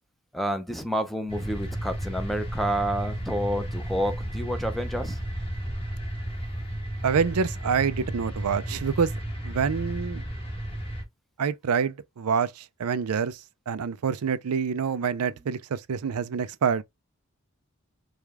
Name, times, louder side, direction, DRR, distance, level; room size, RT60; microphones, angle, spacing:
voice 1, 0.3-5.2, equal, ahead, 0.5 m, -29 dB
sound 1, 1.3-11.0, right 1 dB, 25° left, 1.4 m, -33 dB
voice 2, 7.0-9.1 9.4-10.3 11.4-16.8, right 6 dB, 90° right, 0.5 m, -27 dB
4.8 x 2.3 x 3.5 m
head